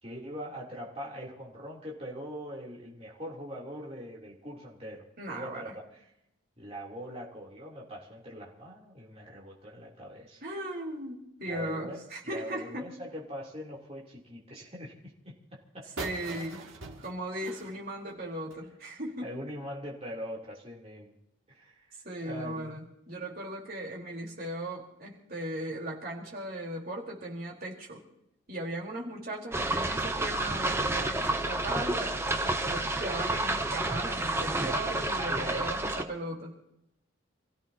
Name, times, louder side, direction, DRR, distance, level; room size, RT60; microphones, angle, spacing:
voice 1, 0.0-6.0 6.6-10.4 11.5-15.3 15.7-15.9 19.2-21.2 21.5-22.8 35.2-35.7, equal, 30° right, -4 dB, 3.3 m, -42 dB
voice 2, 5.2-5.7 10.4-12.9 16.0-16.6 17.0-19.3 22.0-28.0 28.5-36.6, right 1 dB, 45° right, -2 dB, 4.2 m, -37 dB
sound 1, 16.0-18.7, right 3 dB, 75° right, 2.2 m, -43 dB
sound 2, 29.5-36.0, right 2 dB, 10° right, 0.8 m, -30 dB
28.0 x 16.0 x 2.9 m, 0.84 s
head